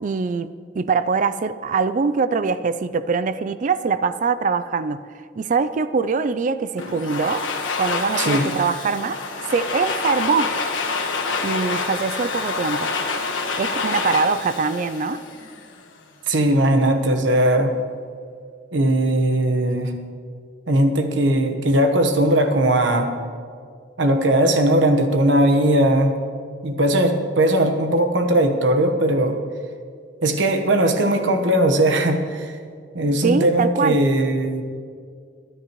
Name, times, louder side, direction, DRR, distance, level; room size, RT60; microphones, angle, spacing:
voice 1, 0.0-5.1 5.4-7.5 7.8-9.2 9.5-10.5 11.4-12.9 13.6-15.2 33.2-34.0, right 5 dB, 40° right, 14 dB, 0.4 m, -23 dB
Domestic sounds home sounds, 6.8-15.7, left 4 dB, 80° left, 1.4 m, -27 dB
voice 2, 16.3-17.7 18.7-19.9 20.7-23.1 24.0-26.1 26.6-29.4 30.2-32.5 32.9-34.6, right 1 dB, 70° right, 6 dB, 1.1 m, -19 dB
22.0 x 10.0 x 3.0 m, 2.1 s
head